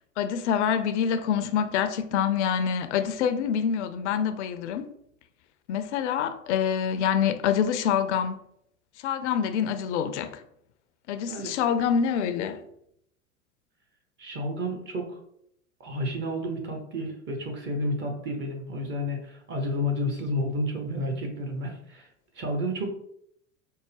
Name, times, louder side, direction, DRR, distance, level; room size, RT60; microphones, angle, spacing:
voice 1, 0.2-4.9 5.7-8.4 9.0-10.4 11.1-12.6, left 8 dB, 60° left, 0.5 m, -26 dB
voice 2, 14.2-15.2 15.8-22.1 22.4-22.9, left 1 dB, 30° right, 0.8 m, -31 dB
4.3 x 2.0 x 3.3 m
figure-of-eight pair, 85°, 41 cm